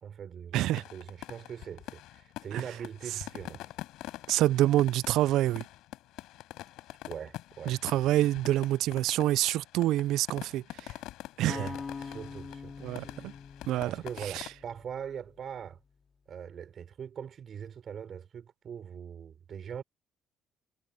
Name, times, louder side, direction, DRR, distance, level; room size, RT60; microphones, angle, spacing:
voice 1, 0.0-3.6 7.1-8.1 11.5-13.1 13.9-15.8 16.3-19.8, right 8 dB, 55° right, 4.1 m, -42 dB
sound 1, 0.8-14.5, left 16 dB, 80° left, 4.5 m, -45 dB
voice 2, 4.3-5.6 7.7-10.9 11.4-11.7 12.8-13.3 13.7-14.0 14.2-14.5, right 14 dB, 75° right, 0.4 m, -27 dB
sound 2, 11.5-15.6, left 5 dB, 40° left, 2.2 m, -44 dB
supercardioid pair, 65°, 0 cm